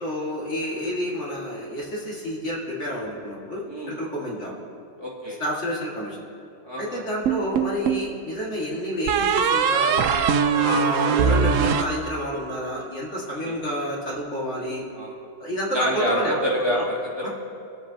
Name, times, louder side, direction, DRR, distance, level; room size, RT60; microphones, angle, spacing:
voice 1, 0.0-4.5 5.4-6.2 6.8-10.2 10.6-14.8 15.4-16.4 16.7-16.8 17.2-17.3, equal, 60° left, -5 dB, 2.5 m, -29 dB
voice 2, 3.7-4.0 5.0-5.4 6.6-7.0 10.5-10.8 13.4-13.6 14.9-15.2 15.7-17.3, equal, 20° right, -6 dB, 2.0 m, -27 dB
sound 1, 7.3-8.1 9.1-12.6, right 6 dB, 75° right, 1.0 m, -22 dB
24.0 x 8.3 x 2.9 m, 2.5 s
omnidirectional pair, 1.4 m